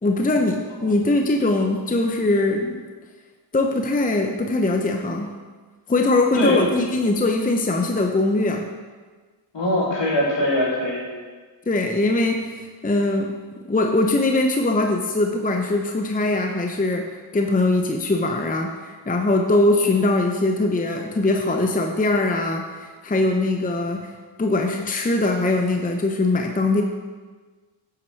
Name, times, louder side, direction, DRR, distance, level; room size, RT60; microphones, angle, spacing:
voice 1, 0.0-2.8 3.5-5.3 5.9-8.7 11.7-13.3 13.7-24.1 24.4-26.8, left 2 dB, 15° left, 4 dB, 0.7 m, -21 dB
voice 2, 6.3-6.8 9.5-11.1, left 1 dB, 60° left, -3 dB, 3.1 m, -22 dB
9.8 x 7.7 x 4.5 m, 1.4 s
cardioid pair, 75°, 49 cm